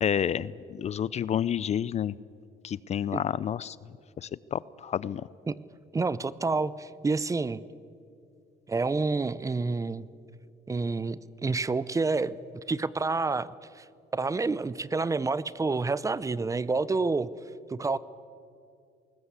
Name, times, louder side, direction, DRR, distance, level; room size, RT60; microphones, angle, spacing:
voice 1, 0.0-2.2 2.6-3.8 4.2-5.2, left 9 dB, 40° left, 20 dB, 0.5 m, -29 dB
voice 2, 5.9-7.6 8.7-10.1 10.7-12.4 12.7-13.9 14.1-17.3 17.7-18.0, right 3 dB, 20° right, 18 dB, 0.6 m, -28 dB
20.5 x 19.0 x 8.2 m, 2.5 s
cardioid pair, 110°, 17 cm